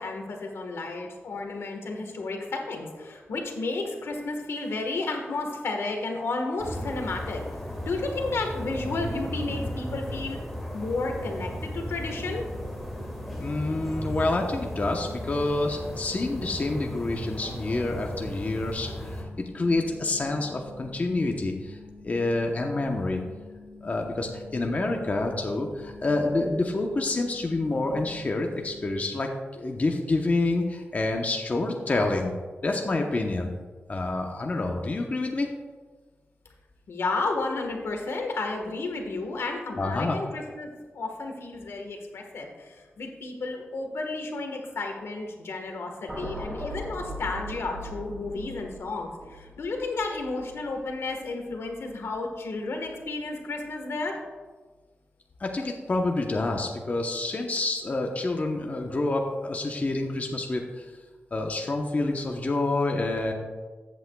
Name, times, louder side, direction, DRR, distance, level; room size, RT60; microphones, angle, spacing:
voice 1, 0.0-7.4 7.8-10.4 10.7-12.4 36.9-40.7 40.9-54.2, left 3 dB, 80° left, 3 dB, 1.4 m, -32 dB
sound 1, 6.6-19.2, equal, ahead, 2.2 m, -35 dB
sound 2, 11.4-29.1, left 3 dB, 65° right, 1.8 m, -48 dB
voice 2, 13.4-19.3 19.5-21.8 22.0-23.2 23.8-32.3 32.6-33.5 33.9-35.5 39.8-40.2 55.4-60.9 61.3-63.3, left 2 dB, 35° left, 2 dB, 0.9 m, -28 dB
sound 3, 46.1-52.4 52.7-53.0, equal, 15° right, 2.4 m, -40 dB
14.0 x 8.3 x 2.3 m, 1.4 s
wide cardioid pair, 100°, 4 cm